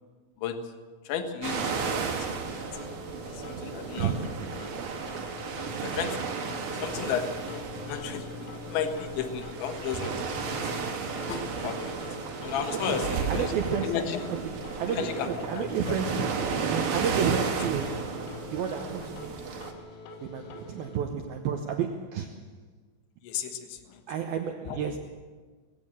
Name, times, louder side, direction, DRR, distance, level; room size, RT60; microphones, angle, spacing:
voice 1, 1.1-2.4 3.3-4.1 5.8-10.8 11.3-12.0 12.4-13.5 13.8-14.2 14.9-16.0 23.2-24.0 24.7-24.8, left 7 dB, 70° left, 7 dB, 3.6 m, -34 dB
sound 1, 1.4-19.7, right 5 dB, 55° right, 3.4 m, -34 dB
sound 2, 2.3-21.0, left 4 dB, 85° left, 4.2 m, -44 dB
voice 2, 4.0-4.5 12.7-13.0 13.3-14.0 14.3-18.1 18.5-19.4 20.2-22.5 24.1-25.0, right 7 dB, 85° right, 4 dB, 2.1 m, -31 dB
21.5 x 16.5 x 7.7 m, 1.4 s
omnidirectional pair, 5.8 m